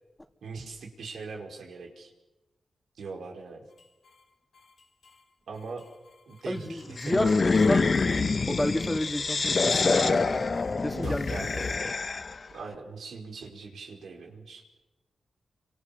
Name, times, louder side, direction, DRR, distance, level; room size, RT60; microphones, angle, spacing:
voice 1, 0.4-2.1 3.0-3.6 5.5-5.8 6.3-8.3 9.6-10.5 10.9-11.9 12.5-14.6, right 4 dB, 85° right, 2 dB, 5.0 m, -40 dB
sound 1, 3.7-4.2 4.5-5.2 5.5-7.2 7.5-8.2 8.5-9.2 9.5-11.8, left 4 dB, 75° left, 2.6 m, -43 dB
voice 2, 6.5-10.2 10.8-11.4, left 1 dB, 15° left, 5 dB, 3.2 m, -31 dB
sound 2, 7.0-12.4, left 4 dB, 55° left, 1.6 m, -26 dB
28.0 x 25.5 x 7.2 m, 1.1 s
cardioid pair, 50°, 0 cm